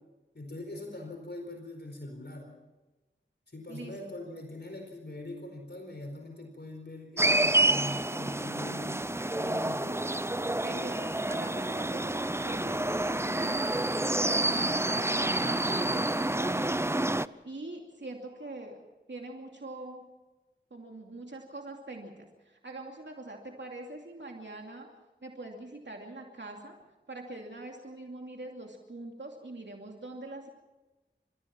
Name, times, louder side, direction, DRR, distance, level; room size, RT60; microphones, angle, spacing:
voice 1, 0.3-2.6 3.5-9.1 9.4-10.1 10.7-11.0, left 1 dB, 60° left, 3 dB, 4.4 m, -42 dB
sound 1, 7.2-17.3, right 1 dB, 15° right, 0.6 m, -28 dB
voice 2, 10.4-13.8 14.0-16.8 17.4-18.8 19.1-20.0 20.7-24.9 25.2-26.8 27.1-30.5, right 2 dB, 65° right, 1 dB, 2.6 m, -43 dB
30.0 x 15.0 x 5.9 m, 1.1 s
wide cardioid pair, 40°, 20 cm